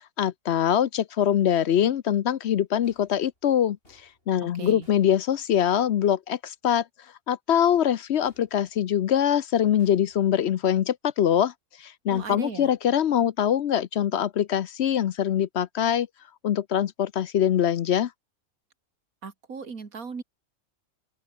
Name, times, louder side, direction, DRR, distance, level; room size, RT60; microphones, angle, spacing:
voice 1, 0.2-4.0 4.3-6.8 7.3-11.5 11.8-16.1 16.4-18.1, left 10 dB, 60° left, 0.8 m, -23 dB
sound 1, 2.8-5.9 8.2-9.3 9.8-10.6 12.1-13.2, left 1 dB, 40° left, 7.5 m, -63 dB
voice 2, 4.5-4.9 12.1-12.7 19.2-20.2, right 5 dB, 75° right, 2.6 m, -37 dB
open air
omnidirectional pair, 1.5 m